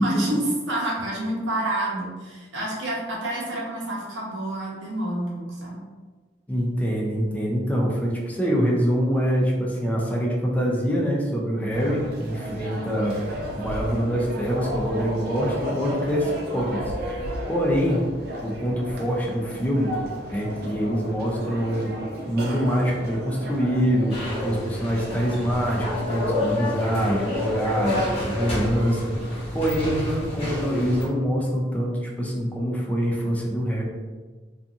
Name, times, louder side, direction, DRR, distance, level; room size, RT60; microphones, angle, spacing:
voice 1, 0.0-5.8, right 1 dB, 85° right, -4 dB, 0.8 m, -28 dB
voice 2, 6.5-13.2 13.6-16.9 17.5-18.1 18.4-19.9 20.3-21.9 22.3-33.8, equal, 10° left, -3 dB, 0.4 m, -25 dB
sound 1, 11.7-28.6, equal, 55° right, 0.5 m, -34 dB
sound 2, 24.1-31.1, left 1 dB, 35° left, 0.8 m, -28 dB
2.6 x 2.5 x 2.4 m, 1.3 s
head